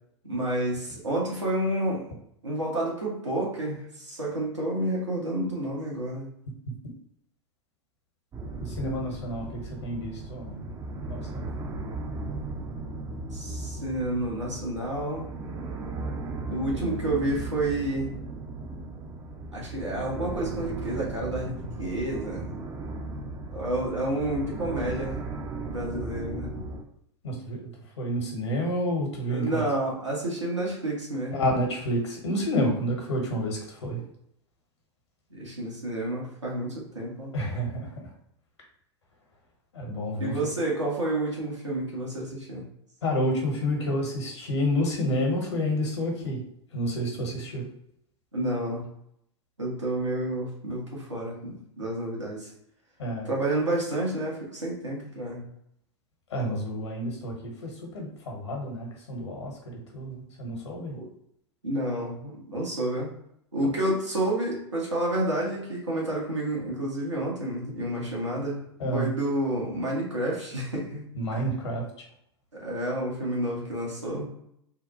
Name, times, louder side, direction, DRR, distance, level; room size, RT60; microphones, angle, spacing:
voice 1, 0.2-2.1 2.4-6.3 13.3-15.3 16.5-18.1 19.5-22.5 23.5-25.2 25.7-26.5 29.3-31.3 35.3-37.3 40.2-42.6 48.3-48.8 49.6-52.5 53.3-55.5 60.9-61.1 61.6-63.1 63.5-68.7 68.9-71.1 71.3-71.4 72.5-74.3, right 1 dB, 90° right, -4 dB, 1.2 m, -30 dB
sound 1, 8.3-26.8, right 2 dB, 20° right, 0.5 m, -36 dB
voice 2, 8.6-10.6 11.1-11.5 27.2-29.7 31.3-34.0 37.3-38.1 39.7-40.3 43.0-46.4 46.7-47.7 53.0-53.3 56.3-61.0 63.6-63.7 68.8-69.1 71.1-71.8, equal, 70° left, 0 dB, 1.2 m, -29 dB
3.6 x 2.2 x 3.0 m, 0.74 s
figure-of-eight pair, 95°, 15 cm